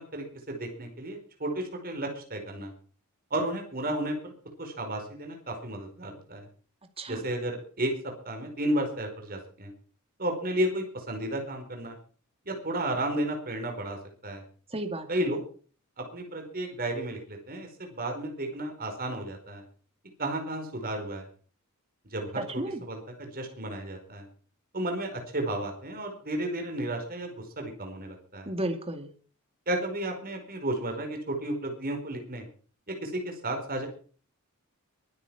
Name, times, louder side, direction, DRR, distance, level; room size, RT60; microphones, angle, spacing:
voice 1, 0.1-2.7 3.3-4.3 4.6-6.5 7.1-7.9 8.2-9.7 10.2-11.9 12.4-14.4 15.1-15.4 16.0-19.6 20.2-21.3 22.1-24.3 24.7-28.5 29.7-32.4 32.9-33.9, right 1 dB, 40° right, 4 dB, 4.8 m, -33 dB
voice 2, 14.7-15.3 22.4-22.8 28.5-29.1, right 1 dB, 25° right, 6 dB, 2.2 m, -33 dB
23.0 x 8.5 x 5.9 m, 0.44 s
head